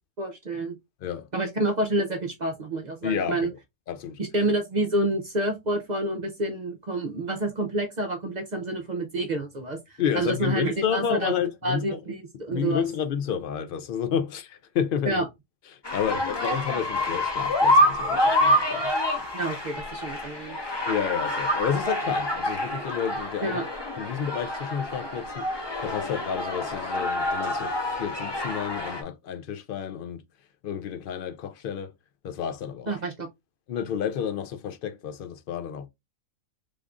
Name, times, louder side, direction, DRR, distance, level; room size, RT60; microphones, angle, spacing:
voice 1, 0.2-0.8 1.3-3.5 4.2-12.8 15.0-15.3 19.3-20.6 23.4-23.7 32.9-33.3, right 1 dB, 50° right, 0.5 m, -28 dB
voice 2, 3.0-3.5 3.9-4.2 10.0-12.0 12.5-15.2 15.9-18.9 20.9-23.6 24.0-25.4 25.8-27.7 28.0-30.2 30.6-31.9 32.2-32.9 33.7-35.9, left 8 dB, 60° left, 0.5 m, -30 dB
chicas aplauden, 15.8-29.0, left 1 dB, 25° left, 0.7 m, -27 dB
3.5 x 2.5 x 3.4 m
omnidirectional pair, 1.4 m